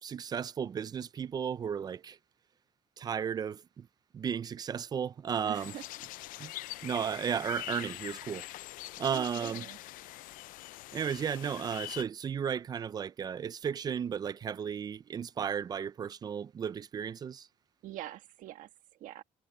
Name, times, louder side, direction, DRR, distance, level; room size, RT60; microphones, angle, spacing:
voice 1, 0.0-2.2 3.0-3.9 4.1-5.8 6.4-6.5 6.8-8.5 9.0-9.7 10.9-17.5, right 7 dB, 30° right, 0.4 m, -34 dB
voice 2, 5.4-5.8 9.1-9.8 17.8-18.7 19.0-19.2, right 13 dB, 80° right, 1.4 m, -43 dB
sound 1, 5.5-12.0, left 17 dB, 90° left, 0.4 m, -44 dB
cardioid pair, 155°, 14 cm